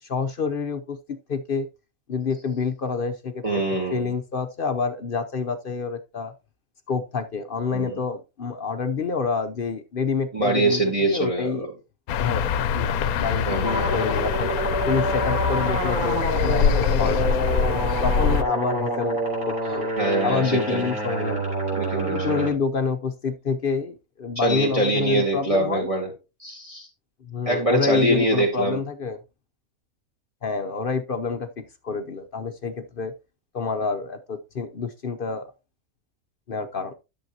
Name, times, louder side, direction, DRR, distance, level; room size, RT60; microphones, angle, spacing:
voice 1, 0.0-1.7 2.1-3.4 3.9-6.3 6.9-10.8 11.1-11.7 12.2-12.5 12.7-14.5 14.9-19.2 19.4-19.9 20.2-21.5 22.0-25.9 27.2-29.2 30.4-33.1 33.5-35.5 36.5-36.9, left 5 dB, 50° left, 0.7 m, -28 dB
voice 2, 3.4-4.1 7.7-8.0 10.3-11.7 13.5-13.9 20.0-20.8 21.7-22.5 24.4-26.1 26.4-26.9 27.5-28.8, right 2 dB, 25° right, 1.8 m, -24 dB
sound 1, 12.1-18.4, left 7 dB, 80° left, 1.1 m, -24 dB
sound 2, 13.6-22.5, right 1 dB, 85° right, 4.1 m, -27 dB
11.0 x 7.2 x 2.8 m
omnidirectional pair, 1.5 m